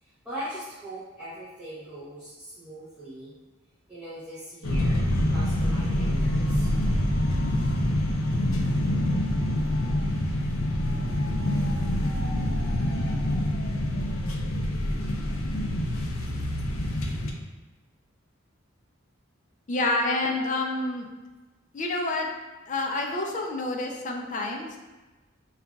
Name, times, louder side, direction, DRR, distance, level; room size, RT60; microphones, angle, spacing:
voice 1, 0.0-3.3 3.9-6.7, right 1 dB, 5° right, -12 dB, 0.7 m, -40 dB
sound 1, 4.6-17.3, left 1 dB, 90° left, 0.5 m, -26 dB
voice 2, 19.7-21.1 21.7-22.3 22.7-24.8, left 2 dB, 40° left, 1 dB, 0.4 m, -28 dB
5.4 x 2.4 x 2.3 m, 1.2 s
head